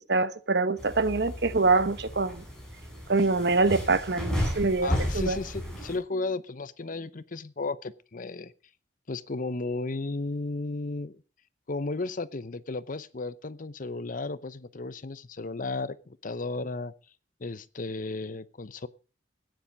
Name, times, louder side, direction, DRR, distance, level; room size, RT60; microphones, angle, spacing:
voice 1, 0.0-2.4 3.1-5.4, right 3 dB, 65° right, 1.1 m, -25 dB
sound 1, 0.8-6.0, equal, 5° left, 7.1 m, -33 dB
voice 2, 4.8-8.5 9.1-11.2 11.7-16.9 17.4-18.9, left 3 dB, 50° left, 0.8 m, -34 dB
15.5 x 10.0 x 5.2 m
head